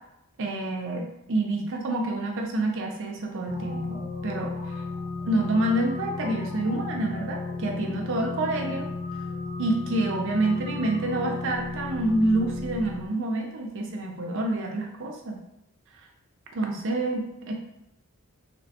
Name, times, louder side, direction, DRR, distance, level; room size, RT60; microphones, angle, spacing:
voice 1, 0.4-4.5 5.3-8.9 9.6-15.4 16.5-17.5, right 2 dB, 60° right, 2 dB, 0.5 m, -27 dB
sound 1, 3.5-13.1, left 3 dB, 40° left, 0.4 m, -34 dB
2.9 x 2.0 x 2.8 m, 0.84 s
head